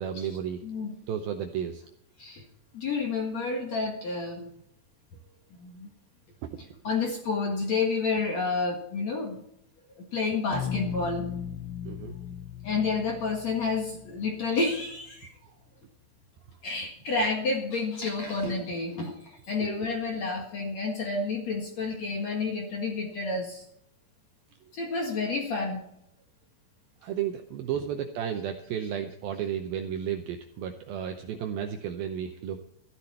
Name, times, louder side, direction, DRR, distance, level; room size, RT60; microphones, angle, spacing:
voice 1, 0.0-0.6 1.1-1.8 6.5-6.7 11.8-12.2 15.4-15.5 19.6-19.9 27.0-32.6, right 9 dB, 80° right, 5 dB, 2.2 m, -33 dB
voice 2, 0.6-0.9 2.2-2.4 2.7-4.5 5.6-5.9 6.8-9.4 10.1-11.3 12.6-15.3 16.6-23.6 24.7-25.8, left 4 dB, 55° left, 1 dB, 2.2 m, -30 dB
sound 1, 10.5-15.1, left 8 dB, 80° left, 3.0 m, -37 dB
14.0 x 12.0 x 4.4 m, 0.75 s
omnidirectional pair, 5.2 m